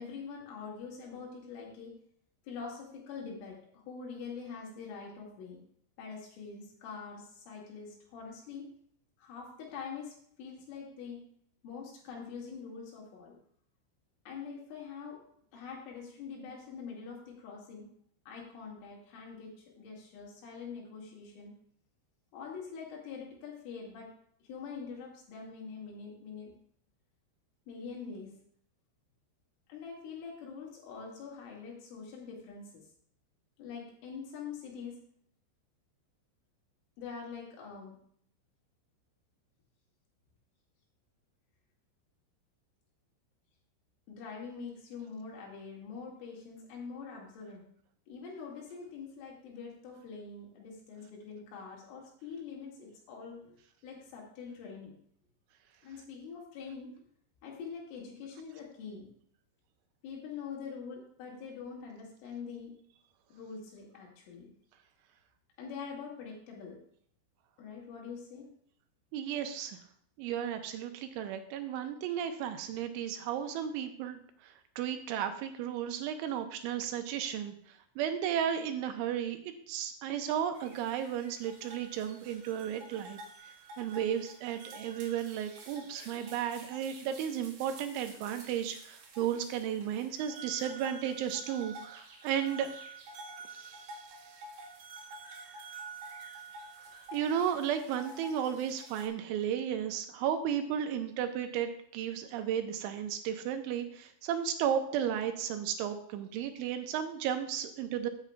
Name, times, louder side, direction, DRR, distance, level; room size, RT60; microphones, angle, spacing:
voice 1, 0.0-1.9 2.4-5.6 6.0-8.7 9.2-11.3 11.6-13.4 14.3-15.2 15.5-17.9 18.3-21.5 22.3-24.1 24.4-26.5 27.7-28.4 29.7-32.9 33.6-35.0 37.0-38.0 44.1-47.7 48.1-54.9 55.8-56.9 57.4-59.1 60.0-62.7 63.3-64.5 65.6-66.8 67.6-68.5, left 5 dB, 75° left, -2 dB, 4.5 m, -44 dB
voice 2, 69.1-69.8 70.2-77.5 78.0-83.2 83.8-92.7 93.5-93.9 97.1-108.1, right 9 dB, 85° right, 7 dB, 2.9 m, -34 dB
sound 1, 80.5-99.1, right 3 dB, 60° right, 3.0 m, -49 dB
16.0 x 8.1 x 2.4 m, 0.64 s
omnidirectional pair, 5.8 m